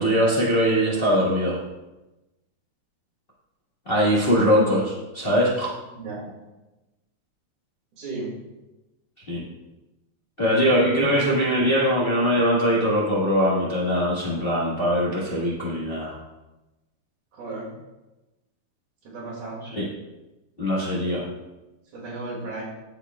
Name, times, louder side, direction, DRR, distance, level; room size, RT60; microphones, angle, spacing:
voice 1, 0.0-1.6 3.8-5.7 9.3-9.4 10.4-16.1 19.7-19.8 20.6-21.2, equal, 40° left, -7 dB, 0.8 m, -21 dB
voice 2, 5.9-6.3 7.9-8.3 17.3-17.7 19.0-19.6 21.9-22.6, right 3 dB, 80° right, -6 dB, 3.7 m, -34 dB
13.5 x 4.7 x 2.3 m, 1.0 s
omnidirectional pair, 3.4 m